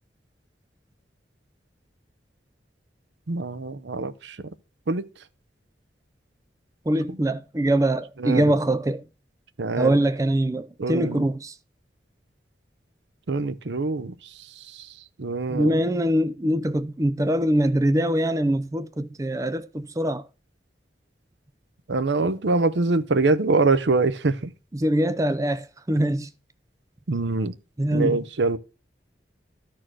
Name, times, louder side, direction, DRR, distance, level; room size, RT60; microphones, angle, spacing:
voice 1, 3.3-4.4 4.9-5.1 7.1-7.2 8.2-8.5 9.6-10.0 10.8-11.3 13.3-14.1 14.7-14.9 15.2-15.8 21.9-24.5 27.1-27.5 27.9-28.6, right 3 dB, 80° right, 0.7 m, -24 dB
voice 2, 6.9-9.0 9.8-11.5 15.5-20.2 24.7-26.3 27.8-28.2, right 1 dB, 20° right, 0.5 m, -23 dB
12.5 x 4.5 x 6.1 m
head